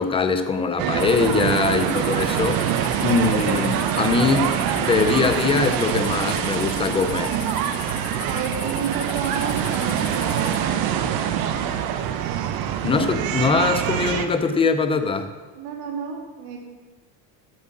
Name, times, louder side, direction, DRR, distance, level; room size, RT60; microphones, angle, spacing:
voice 1, 0.0-2.6 3.0-7.3 12.8-15.3, left 4 dB, 15° left, 9 dB, 0.5 m, -22 dB
sound 1, 0.8-14.3, right 9 dB, 55° right, 0.8 m, -24 dB
sound 2, 1.0-10.6, left 10 dB, 65° left, 1.3 m, -39 dB
voice 2, 8.3-11.8 12.8-13.1 15.5-16.6, right 6 dB, 80° right, 1 dB, 2.5 m, -32 dB
7.9 x 7.4 x 7.4 m, 1.3 s
cardioid pair, 160°, 42 cm